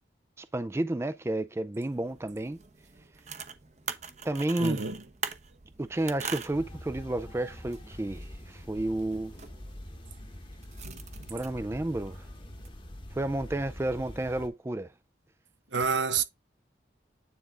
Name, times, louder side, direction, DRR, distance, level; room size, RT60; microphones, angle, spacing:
voice 1, 0.4-2.6 4.2-4.8 5.8-9.3 11.3-12.3 13.1-14.9, right 1 dB, 15° right, 0.3 m, -31 dB
sound 1, 1.9-12.7, right 6 dB, 40° right, 0.8 m, -44 dB
voice 2, 4.6-5.0 10.8-11.3 15.7-16.2, right 5 dB, 80° right, 1.0 m, -29 dB
sound 2, 6.5-14.5, left 1 dB, 25° left, 1.0 m, -45 dB
9.5 x 3.7 x 3.7 m
head